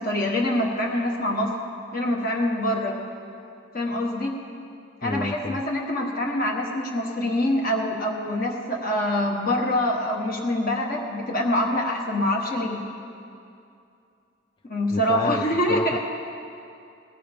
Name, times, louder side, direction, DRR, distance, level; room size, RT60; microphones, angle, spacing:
voice 1, 0.0-1.5 1.9-3.0 3.7-4.3 5.0-12.9 14.6-16.0, left 1 dB, 50° left, 0 dB, 1.2 m, -25 dB
voice 2, 5.0-5.6 14.9-15.4 15.7-16.0, left 2 dB, 25° left, 7 dB, 0.4 m, -30 dB
19.5 x 14.5 x 3.5 m, 2.6 s
head